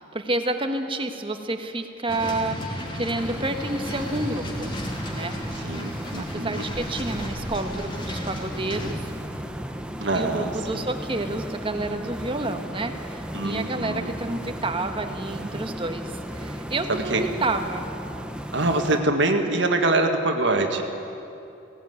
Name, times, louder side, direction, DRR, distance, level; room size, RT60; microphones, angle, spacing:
voice 1, 0.0-4.8 5.1-5.3 6.2-9.1 10.1-17.9, right 2 dB, 25° right, 6 dB, 1.3 m, -29 dB
sound 1, 2.1-8.9, equal, 25° left, 3.0 m, -34 dB
sound 2, 3.2-19.0, equal, 5° right, 0.9 m, -35 dB
voice 2, 5.6-6.7 10.0-10.9 13.3-14.1 16.9-17.3 18.5-20.8, right 2 dB, 65° right, 4 dB, 1.8 m, -24 dB
18.0 x 17.5 x 9.6 m, 2.7 s
head